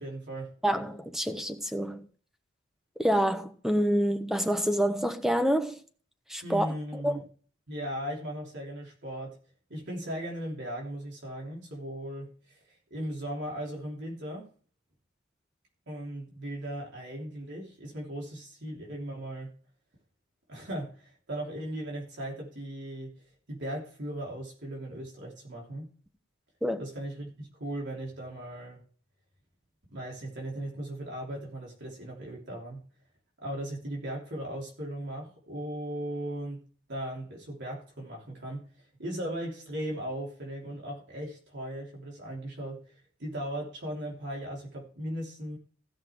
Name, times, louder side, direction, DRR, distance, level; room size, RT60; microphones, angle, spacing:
voice 1, 0.0-0.5 6.4-7.2 7.7-9.4 9.7-14.5 15.9-19.5 20.5-23.2 23.5-25.9 26.8-28.8 29.9-32.8 33.4-36.6 36.9-38.7 39.0-45.6, right 1 dB, 60° right, 3.3 m, -37 dB
voice 2, 0.6-2.1 3.0-5.8 6.3-6.7 7.0-7.2 26.6-26.8, equal, ahead, 1.1 m, -27 dB
16.0 x 5.8 x 4.6 m
head